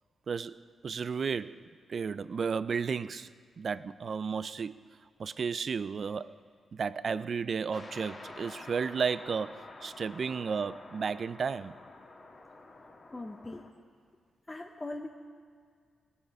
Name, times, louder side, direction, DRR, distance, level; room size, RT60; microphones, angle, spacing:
voice 1, 0.3-1.6 1.9-3.3 3.6-4.7 5.2-6.3 6.7-11.7, right 5 dB, 60° right, 0.4 m, -33 dB
sound 1, 7.7-13.7, left 2 dB, 45° left, 1.7 m, -49 dB
voice 2, 13.1-13.6 14.5-15.1, left 2 dB, 25° left, 0.9 m, -40 dB
18.0 x 8.3 x 4.8 m
cardioid pair, 55°, 0 cm